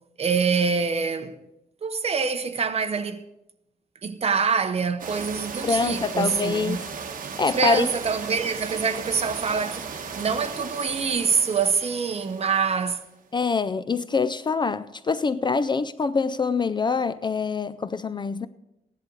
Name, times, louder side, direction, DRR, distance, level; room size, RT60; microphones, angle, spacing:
voice 1, 0.2-1.4 1.8-3.2 4.0-6.9 7.5-9.9 10.1-13.0, right 5 dB, 40° right, 0.9 m, -25 dB
sound 1, 5.0-13.0, right 5 dB, 60° right, 1.2 m, -36 dB
voice 2, 5.6-6.8 7.4-7.9 13.3-18.5, left 4 dB, 30° left, 0.4 m, -25 dB
15.5 x 10.5 x 3.9 m
wide cardioid pair, 145°, 15 cm